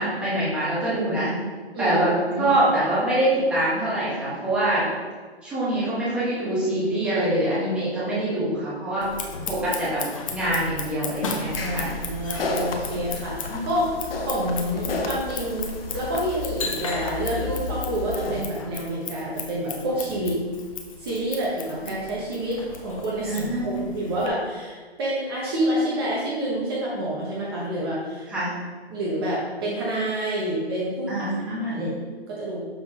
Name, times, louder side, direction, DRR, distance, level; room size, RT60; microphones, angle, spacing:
voice 1, 0.0-1.3 1.8-2.1 2.4-4.9 5.4-9.0 9.5-10.0 10.3-11.9 13.5-13.6 23.2-23.8 28.3-28.5 31.1-31.9, right 1 dB, 5° right, -10 dB, 1.3 m, -24 dB
Scissors, 9.0-24.3, left 4 dB, 30° left, 0.7 m, -36 dB
sound 1, 11.5-18.4, left 3 dB, 60° left, 1.0 m, -32 dB
voice 2, 11.5-20.4 21.0-28.3 28.9-32.0 32.3-32.6, right 1 dB, 20° right, -6 dB, 1.0 m, -28 dB
6.9 x 5.8 x 2.9 m, 1.4 s
hypercardioid pair, 160°, 33 cm